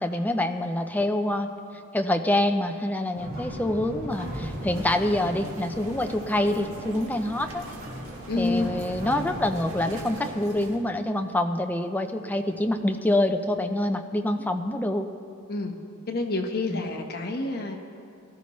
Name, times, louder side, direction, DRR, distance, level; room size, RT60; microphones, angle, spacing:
voice 1, 0.0-1.5 1.9-7.6 8.4-15.1 16.7-16.8, left 1 dB, 10° left, 6 dB, 0.6 m, -26 dB
sound 1, 3.1-10.1, equal, 45° right, 3.8 m, -38 dB
sound 2, 4.1-10.8, right 1 dB, 70° right, 1.8 m, -42 dB
voice 2, 8.3-8.7 15.5-15.7 16.1-17.8, left 2 dB, 50° left, 2 dB, 1.2 m, -28 dB
19.0 x 13.5 x 3.2 m, 2.4 s
head